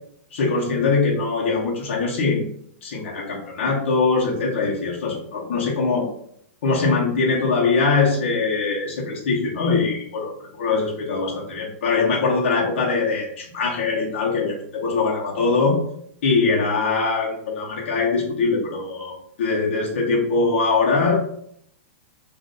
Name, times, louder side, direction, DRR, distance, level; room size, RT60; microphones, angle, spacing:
voice 1, 0.3-2.4 2.8-6.1 6.6-15.8 16.2-21.2, left 4 dB, 60° left, -3 dB, 0.9 m, -22 dB
2.5 x 2.5 x 3.9 m, 0.68 s
supercardioid pair, 170°, 7 cm